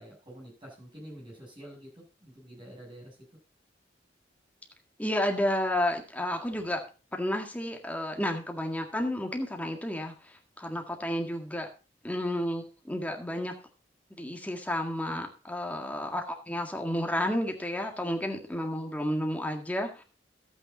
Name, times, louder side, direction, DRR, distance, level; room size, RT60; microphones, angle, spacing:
voice 1, 0.0-3.2, equal, 30° right, -2 dB, 7.5 m, -48 dB
voice 2, 5.0-6.8 7.1-11.7 12.0-13.5 14.2-20.0, left 1 dB, 10° left, 3 dB, 1.9 m, -31 dB
12.5 x 8.8 x 4.2 m, 0.32 s
head